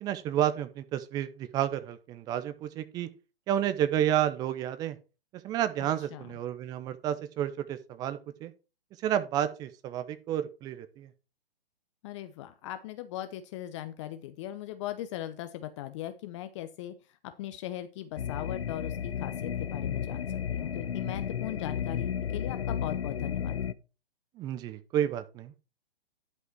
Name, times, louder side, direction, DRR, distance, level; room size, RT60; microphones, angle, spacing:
voice 1, 0.0-3.1 3.5-5.0 5.4-8.5 9.0-11.1 24.4-25.5, right 11 dB, 15° right, 0.5 m, -30 dB
voice 2, 12.0-16.9 17.4-23.6, left 13 dB, 30° left, 0.7 m, -39 dB
sound 1, 18.2-23.7, left 8 dB, 75° left, 0.8 m, -33 dB
11.0 x 5.4 x 4.5 m
hypercardioid pair, 130°, 31 cm